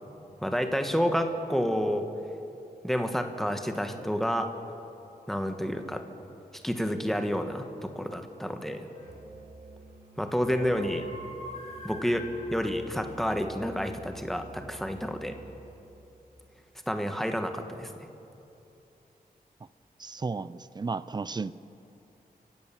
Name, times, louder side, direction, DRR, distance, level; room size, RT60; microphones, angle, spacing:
voice 1, 0.4-2.1 2.8-4.5 5.3-6.0 6.6-8.9 10.2-11.1 11.8-15.4 16.9-17.9, equal, ahead, 6 dB, 1.3 m, -29 dB
sound 1, 8.9-9.3 10.1-13.6, left 1 dB, 40° left, 6.3 m, -45 dB
Musical instrument, 9.0-16.0, right 3 dB, 85° right, 2.3 m, -50 dB
voice 2, 20.0-21.5, right 4 dB, 25° right, 16 dB, 0.5 m, -33 dB
29.5 x 16.0 x 7.4 m, 3.0 s
wide cardioid pair, 175°, 16 cm